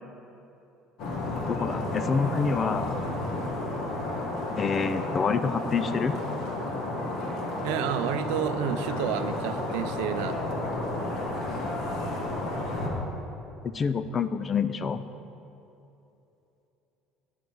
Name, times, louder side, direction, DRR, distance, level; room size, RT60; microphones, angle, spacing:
sound 1, 1.0-12.9, left 2 dB, 50° left, 1.6 m, -32 dB
voice 1, 1.5-3.0 4.6-6.2 13.6-15.1, left 5 dB, 20° left, 13 dB, 0.3 m, -27 dB
voice 2, 7.6-10.4, right 9 dB, 90° right, 10 dB, 0.6 m, -30 dB
10.5 x 9.3 x 4.8 m, 3.0 s
cardioid pair, 170°, 0 cm